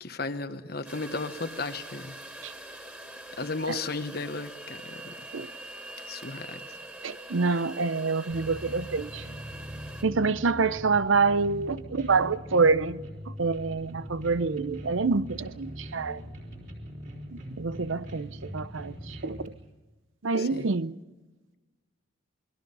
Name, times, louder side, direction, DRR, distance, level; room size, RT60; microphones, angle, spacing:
voice 1, 0.0-2.1 3.4-5.1 6.1-6.6 20.4-20.7, left 3 dB, 50° left, 1.3 m, -34 dB
sound 1, 0.8-10.0, right 1 dB, 10° right, 2.7 m, -44 dB
voice 2, 7.0-9.3 10.0-16.2 17.3-19.5 20.2-21.0, right 4 dB, 75° right, 0.7 m, -27 dB
sound 2, 8.3-19.5, equal, 40° right, 4.0 m, -42 dB
28.5 x 21.5 x 5.5 m
head